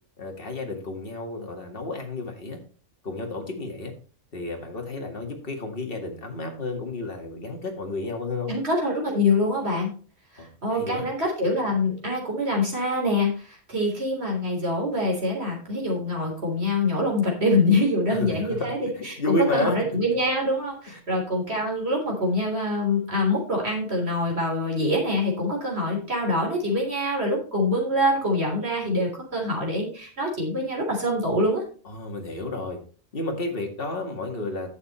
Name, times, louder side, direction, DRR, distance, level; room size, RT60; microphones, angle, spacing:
voice 1, 0.2-2.6 3.0-3.9 4.3-8.5 10.4-11.1 18.1-19.8 20.9-21.0 31.9-32.8 33.1-34.7, left 2 dB, 45° left, 2 dB, 2.3 m, -31 dB
voice 2, 8.5-9.9 10.3-31.6, left 1 dB, 55° right, -1 dB, 4.0 m, -25 dB
11.0 x 7.3 x 4.3 m, 0.40 s
omnidirectional pair, 1.3 m